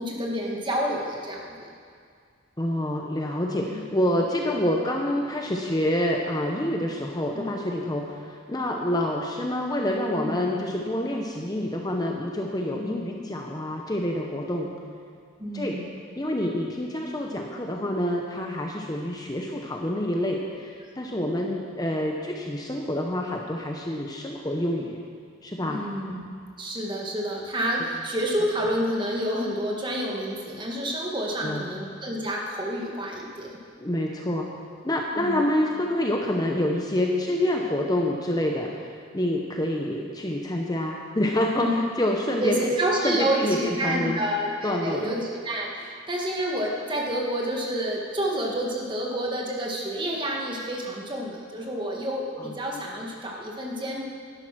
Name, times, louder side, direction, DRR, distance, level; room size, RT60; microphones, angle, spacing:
voice 1, 0.0-1.7 3.6-3.8 7.3-7.5 10.1-10.4 12.7-13.0 15.4-15.8 25.7-26.2 26.6-33.6 35.2-35.4 41.6-41.8 42.4-54.0, equal, 25° right, -1 dB, 1.7 m, -29 dB
voice 2, 2.6-14.7 15.5-15.8 16.2-25.0 25.4-25.8 31.4-31.6 33.8-34.5 34.8-42.6 43.0-44.2 44.6-45.1 52.4-52.6, left 1 dB, 20° left, 1 dB, 0.8 m, -27 dB
12.0 x 11.0 x 6.1 m, 2.2 s
head